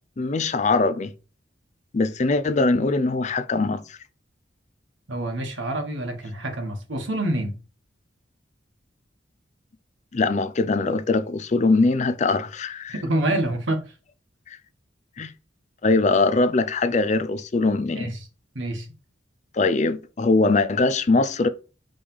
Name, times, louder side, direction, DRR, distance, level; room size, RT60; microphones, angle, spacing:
voice 1, 0.2-1.1 1.9-4.0 10.1-13.0 14.5-14.6 15.2-15.3 15.8-18.1 19.5-21.5, left 3 dB, 40° left, 0.5 m, -22 dB
voice 2, 5.1-7.5 12.9-13.8 18.0-18.2 18.5-18.9, right 1 dB, 80° right, 1.5 m, -27 dB
5.3 x 3.4 x 5.4 m
head